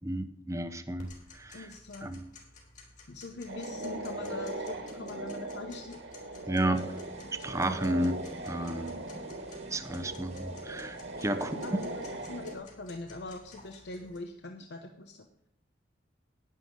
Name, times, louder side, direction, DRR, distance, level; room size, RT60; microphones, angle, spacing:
voice 1, 0.0-1.7 2.0-2.3 6.5-7.0 7.4-8.2 8.5-9.0 9.7-11.8, right 1 dB, 15° right, 10 dB, 0.7 m, -32 dB
Tick-tock, 1.0-14.2, left 3 dB, 40° left, 3.4 m, -55 dB
voice 2, 1.5-2.2 3.1-6.0 7.9-8.2 11.3-15.3, left 2 dB, 65° left, 5 dB, 0.8 m, -43 dB
sound 1, 3.5-12.6, right 2 dB, 85° right, 2.2 m, -40 dB
sound 2, 6.7-12.5, right 1 dB, 35° right, 1.5 m, -51 dB
11.0 x 9.9 x 5.3 m, 0.77 s
head